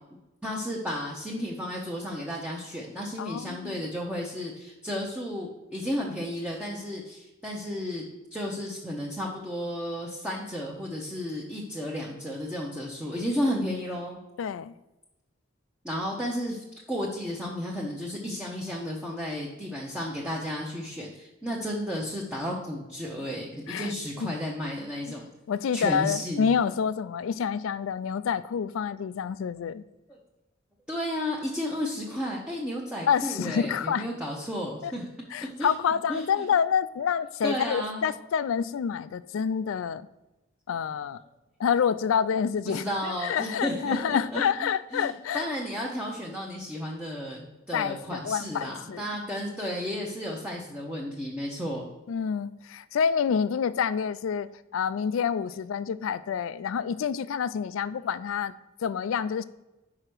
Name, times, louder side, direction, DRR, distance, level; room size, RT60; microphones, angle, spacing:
voice 1, 0.4-8.0 8.3-14.2 15.8-25.3 25.7-26.6 30.1-30.2 30.9-35.1 35.6-35.7 36.1-36.3 37.4-38.1 42.6-51.8, equal, 5° right, -4 dB, 0.8 m, -33 dB
voice 2, 3.2-3.9 14.4-14.7 23.7-23.9 24.2-24.3 25.5-29.8 33.1-34.1 34.8-34.9 35.3-40.1 40.7-41.2 41.6-45.5 47.7-49.1 52.1-54.5 54.7-58.5 58.8-59.4, left 7 dB, 80° left, 15 dB, 0.3 m, -28 dB
5.6 x 4.9 x 6.0 m, 1.0 s
head